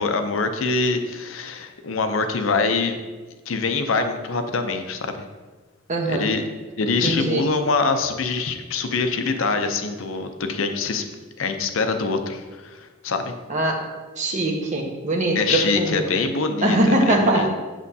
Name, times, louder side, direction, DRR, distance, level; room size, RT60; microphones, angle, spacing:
voice 1, 0.0-3.0 3.5-5.3 6.1-6.4 6.8-11.1 11.4-13.3 15.3-17.5, left 4 dB, 70° left, 7 dB, 0.6 m, -24 dB
voice 2, 5.9-6.3 7.0-7.4 13.5-13.9 14.2-16.0 16.6-17.6, right 1 dB, 35° right, 0 dB, 1.0 m, -22 dB
7.5 x 6.3 x 2.7 m, 1.3 s
head